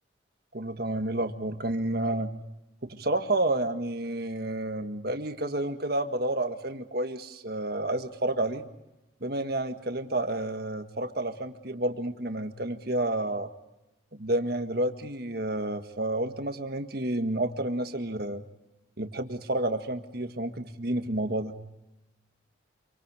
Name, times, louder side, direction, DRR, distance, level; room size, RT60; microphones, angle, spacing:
voice 1, 0.5-2.4 2.8-8.6 9.2-13.5 14.2-18.4 19.0-21.6, right 1 dB, 50° right, 7 dB, 1.7 m, -30 dB
27.0 x 24.5 x 4.9 m, 0.96 s
head